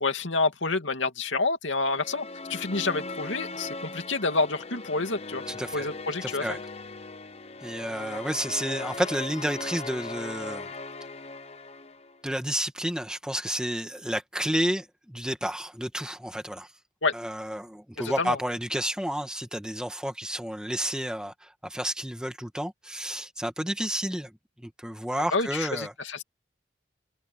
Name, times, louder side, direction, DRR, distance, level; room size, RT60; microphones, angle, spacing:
voice 1, 0.0-5.4 5.7-6.5 17.0-17.1 18.0-18.4 25.3-26.2, left 3 dB, 80° left, 2.6 m, -28 dB
sound 1, 1.8-12.2, left 3 dB, 30° left, 0.9 m, -39 dB
voice 2, 5.5-5.9 6.2-6.6 7.6-10.7 12.2-16.7 17.1-24.3 24.6-25.9, equal, 5° right, 1.9 m, -31 dB
head